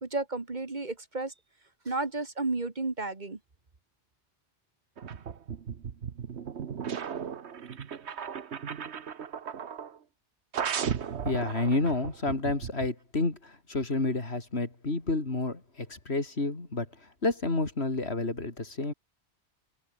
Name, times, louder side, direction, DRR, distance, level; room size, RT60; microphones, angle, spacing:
voice 1, 0.0-1.3 1.9-3.4, right 3 dB, 45° right, 2.0 m, -32 dB
sound 1, 5.0-10.0 10.5-12.9, right 7 dB, 80° right, 1.4 m, -36 dB
voice 2, 11.2-18.9, left 2 dB, 70° left, 3.7 m, -30 dB
omnidirectional pair, 1.1 m